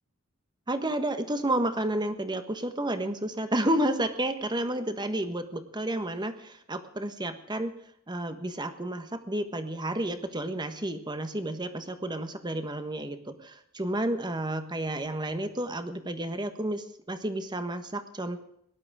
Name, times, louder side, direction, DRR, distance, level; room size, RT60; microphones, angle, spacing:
voice 1, 0.7-7.7 8.1-18.4, right 1 dB, 20° right, 9 dB, 1.4 m, -31 dB
19.0 x 11.5 x 5.0 m, 0.74 s
head